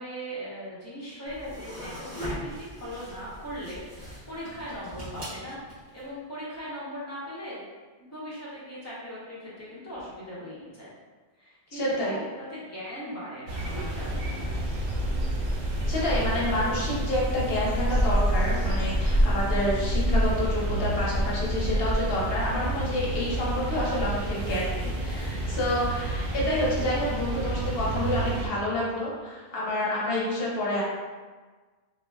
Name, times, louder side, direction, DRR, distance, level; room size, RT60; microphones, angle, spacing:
voice 1, 0.0-5.6 5.9-7.6 8.0-10.9 11.4-14.6, equal, 15° left, -9 dB, 0.7 m, -39 dB
sound 1, 1.3-6.0, equal, 45° right, 1.2 m, -40 dB
voice 2, 11.7-12.2 15.9-30.8, left 1 dB, 70° left, -5 dB, 0.9 m, -28 dB
sound 2, 13.5-28.5, right 1 dB, 90° right, 0.9 m, -28 dB
3.4 x 2.1 x 2.2 m, 1.4 s
omnidirectional pair, 1.1 m